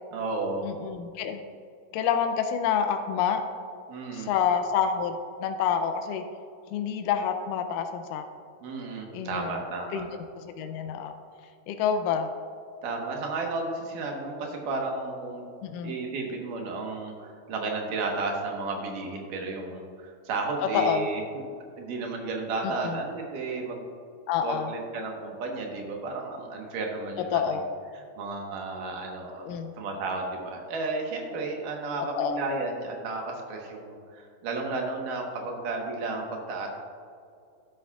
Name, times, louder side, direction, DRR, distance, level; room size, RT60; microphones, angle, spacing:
voice 1, 0.1-0.6 3.9-4.3 8.6-10.0 12.8-15.5 15.8-21.5 21.8-23.8 24.4-27.7 27.9-29.5 29.8-36.7, right 3 dB, 80° right, 0 dB, 2.8 m, -33 dB
voice 2, 0.6-1.4 1.9-3.4 4.1-5.2 5.4-6.2 6.7-8.3 9.1-9.6 9.9-10.1 10.5-11.2 11.7-12.3 15.6-15.9 20.7-21.1 22.6-23.0 24.3-24.7 27.3-27.7 29.4-29.7 32.2-32.4, left 7 dB, 85° left, 6 dB, 2.2 m, -27 dB
11.5 x 11.0 x 2.4 m, 2.4 s
omnidirectional pair, 3.8 m